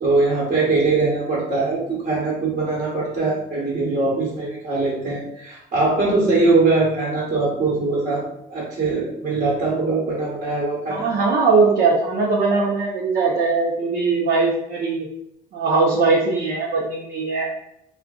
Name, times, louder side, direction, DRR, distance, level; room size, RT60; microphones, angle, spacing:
voice 1, 0.0-11.1, right 3 dB, 45° right, -6 dB, 1.1 m, -21 dB
voice 2, 10.9-15.1 15.5-17.5, right 4 dB, 60° right, -4 dB, 0.7 m, -20 dB
3.7 x 2.4 x 2.3 m, 0.76 s
cardioid pair, 110°, 17 cm